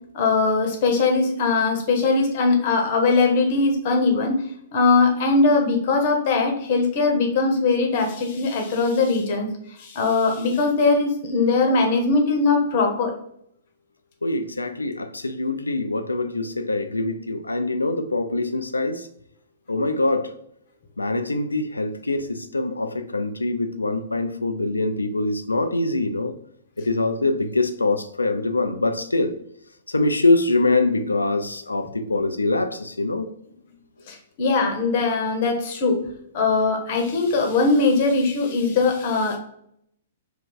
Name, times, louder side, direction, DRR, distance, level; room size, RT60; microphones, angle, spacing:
voice 1, 0.1-4.4 4.7-9.5 9.8-13.1 34.1-36.0 36.3-39.4, left 3 dB, 50° left, 3 dB, 0.8 m, -20 dB
voice 2, 14.2-19.1 19.7-20.3 21.0-26.3 26.8-29.3 29.9-33.3, left 2 dB, 90° left, 9 dB, 0.3 m, -24 dB
2.6 x 2.3 x 3.8 m, 0.69 s
figure-of-eight pair, 115°, 0 cm